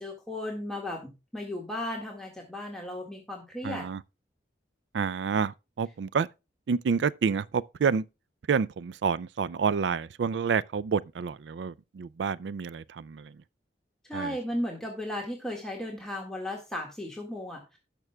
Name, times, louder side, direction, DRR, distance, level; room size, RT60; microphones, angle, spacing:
voice 1, 0.0-3.9 14.1-17.8, left 1 dB, 5° left, 1.7 m, -35 dB
voice 2, 3.6-4.0 4.9-6.3 6.7-8.0 8.5-13.3 14.1-14.3, right 6 dB, 80° right, 0.4 m, -28 dB
17.5 x 6.1 x 2.2 m
head